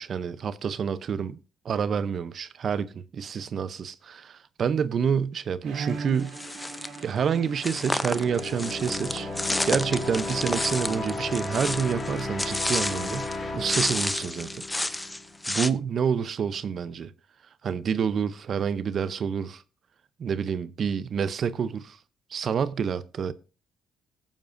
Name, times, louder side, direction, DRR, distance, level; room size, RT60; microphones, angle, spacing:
voice 1, 0.0-1.4 1.6-6.4 7.0-9.3 9.7-14.6 15.5-17.1 17.6-19.6 20.2-22.0 22.3-23.3, right 7 dB, 55° right, 0.6 m, -28 dB
Bowed string instrument, 5.6-11.6, right 4 dB, 85° right, 1.9 m, -40 dB
sound 1, 6.3-7.0 7.6-13.4 13.6-15.7, left 1 dB, 10° left, 0.6 m, -31 dB
sound 2, 7.6-15.3, left 3 dB, 40° left, 2.0 m, -34 dB
20.0 x 7.2 x 2.6 m
cardioid pair, 90°, 0 cm